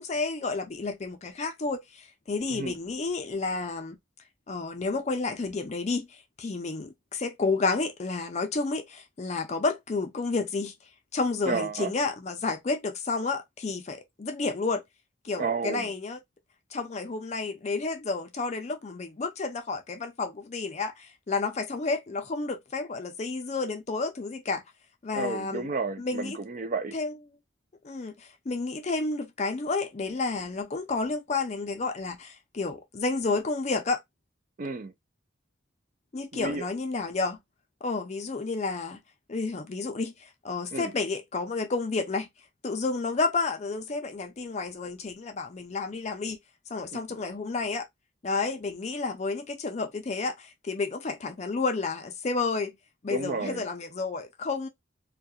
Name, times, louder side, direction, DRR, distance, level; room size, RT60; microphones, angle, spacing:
voice 1, 0.0-4.0 4.5-10.7 11.1-14.8 15.2-16.2 16.7-24.6 25.0-25.7 26.0-26.4 26.9-27.1 27.8-34.0 36.1-37.4 37.8-39.0 39.3-42.3 42.6-46.4 46.7-47.9 48.2-52.7 53.0-54.7, left 3 dB, 35° left, 0.4 m, -31 dB
voice 2, 11.5-11.9 15.4-15.9 25.1-27.0 34.6-34.9 36.3-36.6 40.7-40.9 46.9-47.0 53.1-53.6, right 4 dB, 40° right, 0.3 m, -31 dB
2.3 x 2.2 x 2.7 m
head